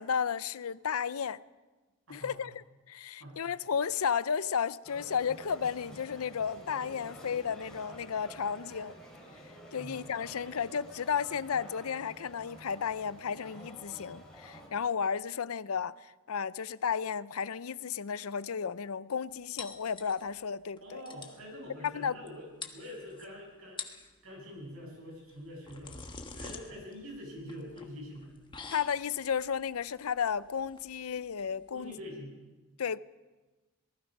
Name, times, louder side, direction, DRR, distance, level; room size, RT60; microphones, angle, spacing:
voice 1, 0.0-1.4 2.1-8.9 9.7-15.9 16.3-21.0 21.8-22.2 28.7-31.9 32.8-33.0, left 7 dB, 80° left, 0.5 m, -33 dB
sound 1, 4.8-14.7, equal, 5° left, 5.2 m, -50 dB
sound 2, 19.6-20.5 20.8-20.9 21.1-21.4 22.3-22.4 22.6-23.3 23.6-24.1 25.3-31.9, left 4 dB, 20° left, 1.3 m, -46 dB
voice 2, 20.8-22.5 22.7-23.8 24.2-28.3 31.7-32.3, left 1 dB, 70° right, 7.9 m, -45 dB
26.5 x 19.0 x 5.3 m
head